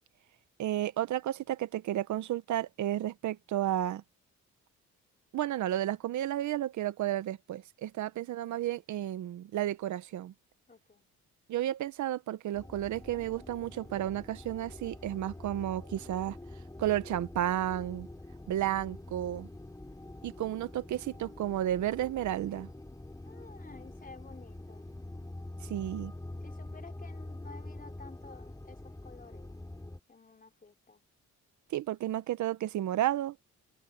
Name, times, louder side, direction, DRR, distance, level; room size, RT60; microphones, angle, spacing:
voice 1, 0.6-4.0 5.3-10.3 11.5-16.4 16.8-18.1 18.5-19.5 20.2-22.7 25.6-26.1 31.7-33.4, right 12 dB, 70° right, 1.0 m, -32 dB
voice 2, 10.7-11.1 23.2-24.9 26.4-29.6 30.1-31.0, left 4 dB, 30° left, 4.1 m, -53 dB
sound 1, 12.5-30.0, left 1 dB, 10° left, 6.0 m, -46 dB
open air
cardioid pair, 90°, 30 cm